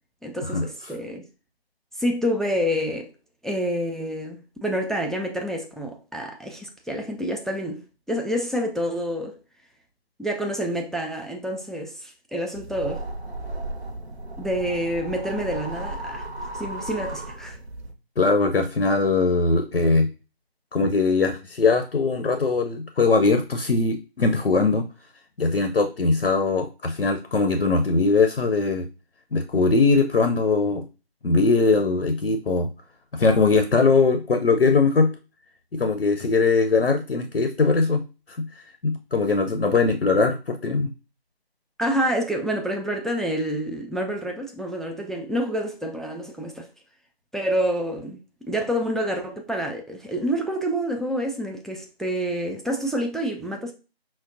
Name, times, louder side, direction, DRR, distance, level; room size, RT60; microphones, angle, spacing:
voice 1, 0.2-1.2 2.0-3.1 3.4-7.8 8.1-9.3 10.2-13.1 14.4-16.3 16.5-17.6 41.8-46.7 47.3-48.2 48.5-53.7, equal, ahead, 0.4 m, -28 dB
sound 1, 12.5-17.9, right 1 dB, 85° right, 0.7 m, -35 dB
voice 2, 18.2-20.1 20.7-24.9 25.4-28.9 29.3-30.8 31.2-32.7 33.1-35.1 35.7-38.0 38.8-40.9, left 3 dB, 75° left, 0.6 m, -21 dB
5.8 x 2.1 x 2.5 m
figure-of-eight pair, 175°, 32 cm